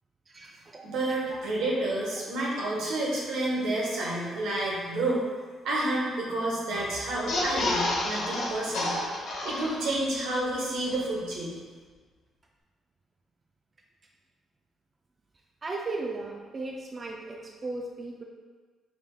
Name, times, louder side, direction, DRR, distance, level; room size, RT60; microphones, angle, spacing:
voice 1, 0.3-1.0 1.3-1.4 15.6-18.2, right 3 dB, 35° right, 0 dB, 0.4 m, -36 dB
voice 2, 0.8-5.2 5.6-9.0 9.4-11.6, right 1 dB, 85° right, -4 dB, 1.0 m, -29 dB
sound 1, 7.1-10.1 10.5-10.6 10.8-10.9, left 2 dB, 85° left, 0.9 m, -30 dB
4.7 x 3.5 x 2.3 m, 1.5 s
cardioid pair, 90°, 0 cm